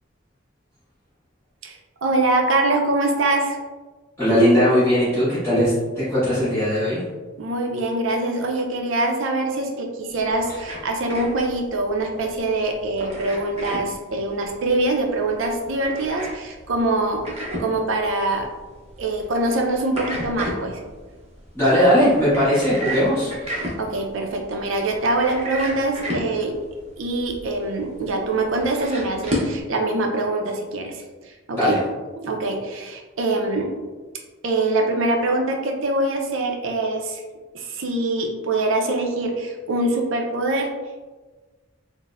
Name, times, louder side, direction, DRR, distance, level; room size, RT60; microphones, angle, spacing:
voice 1, 1.6-3.6 7.4-18.5 19.0-20.8 23.5-26.5 27.0-31.8 32.2-33.7 34.4-37.2 37.5-40.7, right 2 dB, 70° right, 2 dB, 0.5 m, -24 dB
voice 2, 4.2-7.0 21.5-23.5 31.5-31.8, equal, 15° left, -16 dB, 1.4 m, -19 dB
sound 1, 10.1-29.6, equal, 30° right, 0.6 m, -33 dB
3.9 x 2.0 x 2.4 m, 1.3 s
head